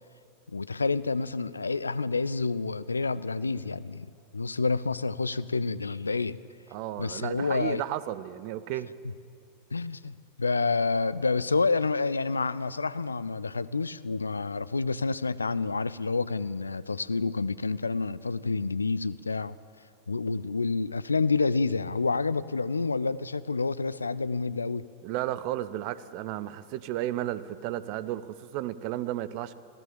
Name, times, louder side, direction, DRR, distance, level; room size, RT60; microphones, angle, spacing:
voice 1, 0.5-6.4 7.0-7.8 9.7-19.6 20.1-24.9, left 4 dB, 80° left, 0.6 m, -28 dB
voice 2, 6.7-8.9 25.0-29.5, right 13 dB, 45° right, 0.9 m, -33 dB
24.5 x 17.5 x 8.6 m
figure-of-eight pair, 90°, 0 cm